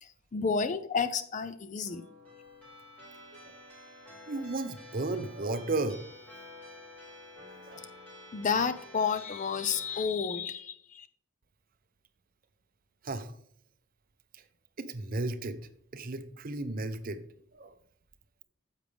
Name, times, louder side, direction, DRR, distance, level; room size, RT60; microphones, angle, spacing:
voice 1, 0.0-2.0 8.3-11.1, left 5 dB, 35° left, 12 dB, 0.4 m, -31 dB
sound 1, 1.9-10.0, left 1 dB, 5° left, 4.3 m, -50 dB
voice 2, 4.3-6.0 7.4-7.9 13.0-13.3 14.3-14.4 14.8-15.6 15.9-17.3 17.5-17.7, right 2 dB, 40° right, 11 dB, 0.6 m, -34 dB
10.0 x 7.4 x 3.4 m, 0.63 s
head